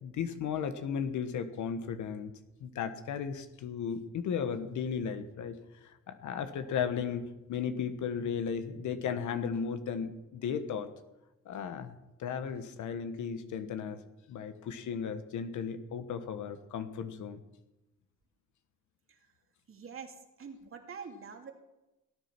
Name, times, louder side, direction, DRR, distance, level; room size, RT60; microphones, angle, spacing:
voice 1, 0.0-2.3 2.6-5.6 5.8-10.9 11.4-14.0 14.3-17.4, left 7 dB, 75° left, 10 dB, 1.4 m, -35 dB
voice 2, 19.7-21.5, right 6 dB, 45° right, 3 dB, 2.6 m, -45 dB
17.5 x 9.6 x 6.0 m, 0.98 s
cardioid pair, 90°, 30 cm